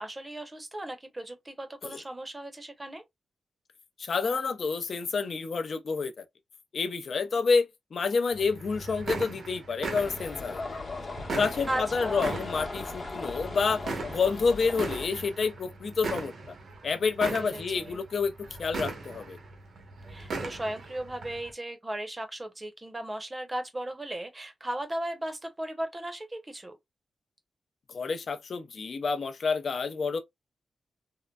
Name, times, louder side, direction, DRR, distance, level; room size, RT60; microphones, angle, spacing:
voice 1, 0.0-3.0 11.7-12.3 17.3-18.0 20.1-26.8, right 1 dB, 20° right, 0.8 m, -36 dB
voice 2, 4.0-6.2 6.7-10.6 11.3-13.8 14.1-16.3 16.8-18.3 18.6-19.4 27.9-30.2, left 4 dB, 55° left, 0.6 m, -28 dB
sound 1, 8.3-21.5, right 3 dB, 75° right, 1.0 m, -39 dB
sound 2, 10.0-15.1, left 3 dB, 40° left, 0.9 m, -38 dB
3.7 x 2.1 x 2.2 m
wide cardioid pair, 100°, 0 cm